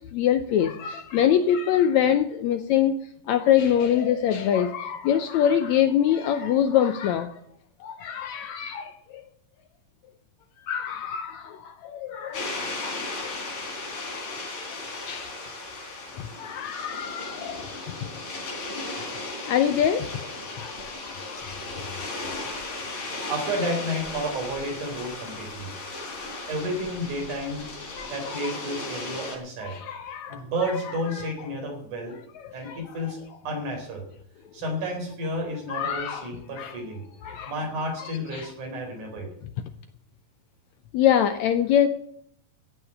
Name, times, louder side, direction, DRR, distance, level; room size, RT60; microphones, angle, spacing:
voice 1, 0.1-2.9 3.3-7.3 7.8-9.2 10.7-13.3 13.9-14.3 15.1-15.3 16.4-17.6 19.4-20.2 20.6-21.8 22.3-22.5 23.2-23.3 28.0-28.5 29.7-30.4 32.4-32.8 35.7-36.3 36.6-36.7 37.2-37.5 38.3-38.5 40.9-41.9, left 9 dB, 80° left, 10 dB, 1.7 m, -25 dB
sound 1, 12.3-29.4, left 2 dB, 60° left, 5.2 m, -36 dB
voice 2, 23.3-25.7 26.5-27.7 28.1-29.8 30.3-32.2 32.5-34.0 34.5-37.0 37.5-39.3, equal, 60° right, 1 dB, 5.5 m, -31 dB
15.5 x 6.4 x 9.6 m, 0.69 s
omnidirectional pair, 3.9 m